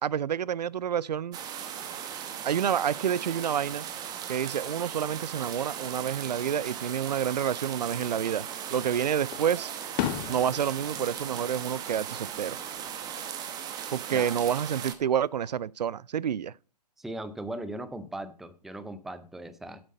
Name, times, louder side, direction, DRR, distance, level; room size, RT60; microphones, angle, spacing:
voice 1, 0.0-1.4 2.4-3.9 4.3-9.7 10.3-12.6 13.9-16.5, right 9 dB, 75° right, 0.4 m, -29 dB
sound 1, 1.3-15.0, right 9 dB, 20° right, 1.0 m, -38 dB
sound 2, 5.7-12.7, right 8 dB, 40° right, 1.9 m, -58 dB
Fireworks, 8.1-8.8 9.3-12.4 12.8-13.3 14.9-15.7, left 12 dB, 30° left, 1.1 m, -37 dB
voice 2, 17.0-19.8, right 1 dB, ahead, 0.5 m, -38 dB
8.2 x 7.7 x 5.2 m
hypercardioid pair, 135°, 21 cm